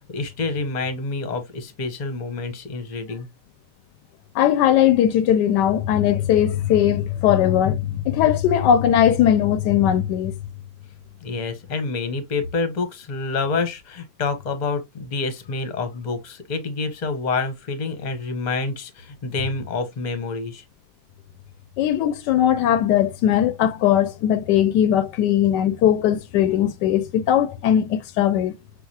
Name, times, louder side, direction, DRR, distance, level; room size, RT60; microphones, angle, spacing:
voice 1, 0.1-3.3 11.2-20.6, left 3 dB, 30° left, 0.9 m, -27 dB
voice 2, 4.4-10.3 21.8-28.5, left 10 dB, 85° left, 1.2 m, -19 dB
6.4 x 2.4 x 2.7 m
omnidirectional pair, 1.8 m